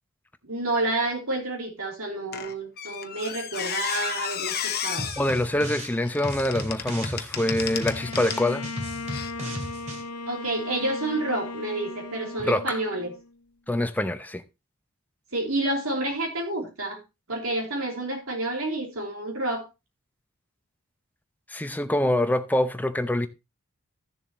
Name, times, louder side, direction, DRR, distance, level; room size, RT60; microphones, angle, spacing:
voice 1, 0.4-5.1 10.3-13.1 15.3-17.0 17.3-19.7, right 2 dB, 70° right, 3.1 m, -29 dB
Squeak, 2.3-8.5 9.1-9.3, left 9 dB, 45° left, 0.9 m, -33 dB
sound 1, 5.0-5.9 6.2-10.0, equal, 30° right, 2.5 m, -35 dB
voice 2, 5.2-8.6 12.4-12.8 13.7-14.4 21.5-23.3, left 1 dB, 10° left, 0.6 m, -25 dB
Bowed string instrument, 7.7-13.4, left 3 dB, 80° left, 0.7 m, -37 dB
14.5 x 7.1 x 3.0 m
head